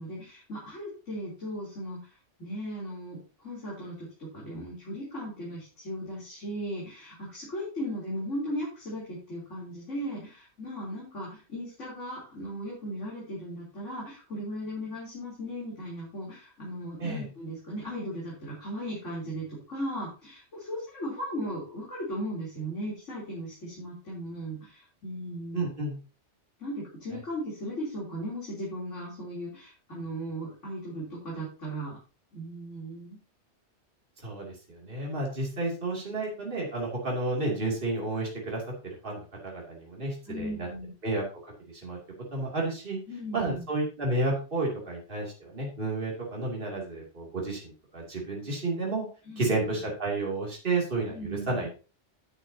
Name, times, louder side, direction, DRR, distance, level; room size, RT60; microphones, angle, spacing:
voice 1, 0.0-2.1 2.4-25.7 26.6-32.0 32.3-33.2 40.3-40.9 43.1-43.6 49.3-49.8 51.1-51.7, equal, 80° left, -6 dB, 3.9 m, -37 dB
voice 2, 25.5-26.0 34.2-40.7 41.0-41.2 41.7-42.0 42.3-43.0 43.3-49.0 49.4-51.7, right 2 dB, 45° right, -2 dB, 2.9 m, -31 dB
11.5 x 8.6 x 2.8 m, 0.34 s
omnidirectional pair, 1.2 m